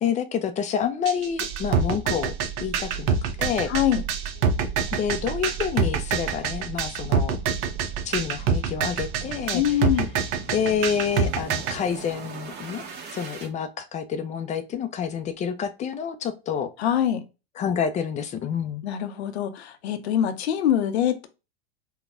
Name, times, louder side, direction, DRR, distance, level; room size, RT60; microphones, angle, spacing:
voice 1, 0.0-2.3 2.6-3.7 4.9-7.4 8.0-9.9 10.5-12.8 13.1-16.7 17.6-18.8, left 7 dB, 20° left, 0.5 m, -28 dB
sound 1, 1.1-11.8, right 6 dB, 50° right, 0.7 m, -25 dB
sound 2, 1.3-13.5, right 7 dB, 30° right, 1.2 m, -38 dB
voice 2, 3.7-4.0 9.5-10.1 16.8-17.2 18.8-21.3, left 10 dB, 75° left, 0.7 m, -24 dB
4.0 x 2.2 x 3.6 m
hypercardioid pair, 105°, 32 cm